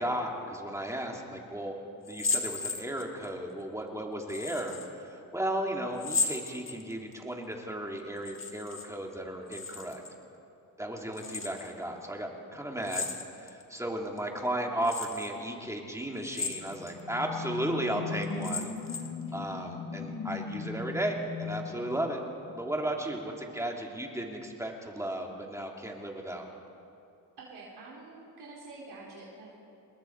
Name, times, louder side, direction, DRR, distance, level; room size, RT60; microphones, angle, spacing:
voice 1, 0.0-10.0 10.8-13.1 13.3-18.7 19.3-22.2 22.5-26.5, right 1 dB, 10° right, 0 dB, 2.6 m, -35 dB
sound 1, 2.0-3.3 4.3-4.9 6.0-7.1 8.2-8.9 9.2-10.1 11.1-11.7 12.8-13.6 14.2-14.3 14.8-15.3 16.2-17.0 17.4-17.5 18.2-19.2, left 4 dB, 35° left, 1.8 m, -35 dB
sound 2, 16.3-22.8, left 5 dB, 70° left, 3.1 m, -39 dB
voice 2, 27.4-29.5, right 3 dB, 85° right, -5 dB, 4.1 m, -47 dB
27.0 x 21.0 x 4.6 m, 2.6 s
cardioid pair, 110°, 38 cm